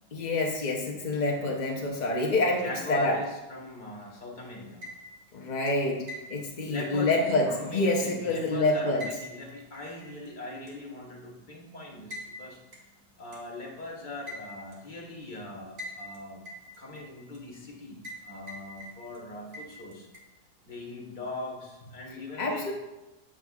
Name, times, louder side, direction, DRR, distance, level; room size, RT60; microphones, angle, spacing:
voice 1, 0.1-3.2 5.3-6.0 6.3-9.0 22.4-22.7, left 2 dB, 55° left, -1 dB, 0.5 m, -27 dB
voice 2, 2.6-4.8 6.7-7.2 7.5-12.6 13.2-16.4 16.8-20.1 20.6-22.7, left 2 dB, 30° left, -3 dB, 1.3 m, -41 dB
sound 1, 4.6-5.3 5.7-8.5 9.0-10.3 10.7-10.8 12.1-12.3 12.7-12.8 13.3-13.4 14.3-14.8 15.8-16.2 16.5-17.4 18.0-18.2 18.5-19.2 19.5-20.2, left 1 dB, 40° right, 1.3 m, -43 dB
7.8 x 7.3 x 2.4 m, 1.0 s
omnidirectional pair, 1.8 m